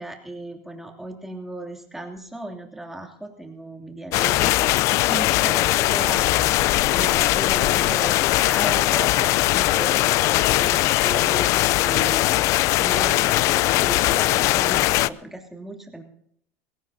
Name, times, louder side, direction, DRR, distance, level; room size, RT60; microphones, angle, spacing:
voice 1, 0.0-6.2 6.5-8.2 8.5-12.4 12.7-16.0, right 2 dB, 5° right, 1 dB, 2.9 m, -36 dB
sound 1, 4.1-15.1, left 17 dB, 55° left, 0.5 m, -20 dB
21.5 x 16.5 x 2.8 m, 0.70 s
supercardioid pair, 135°, 6 cm